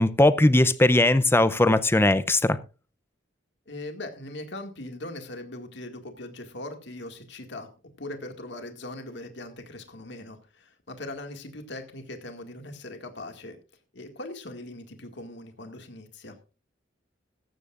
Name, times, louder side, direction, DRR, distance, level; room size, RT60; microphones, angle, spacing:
voice 1, 0.0-2.6, left 1 dB, 15° left, 0.6 m, -19 dB
voice 2, 3.7-7.7 8.0-13.6 13.9-16.4, left 2 dB, 70° left, 2.0 m, -40 dB
16.5 x 14.0 x 2.5 m
head